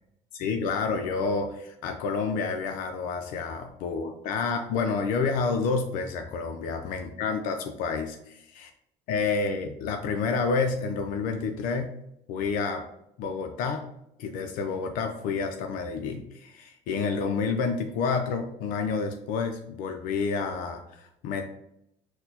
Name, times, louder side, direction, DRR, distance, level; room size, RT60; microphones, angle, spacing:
voice 1, 0.3-8.7 9.1-11.9 12.3-12.8 13.2-13.9 14.2-21.4, left 4 dB, 75° left, 5 dB, 0.4 m, -29 dB
4.3 x 2.1 x 2.7 m, 0.78 s
cardioid pair, 105°, 14 cm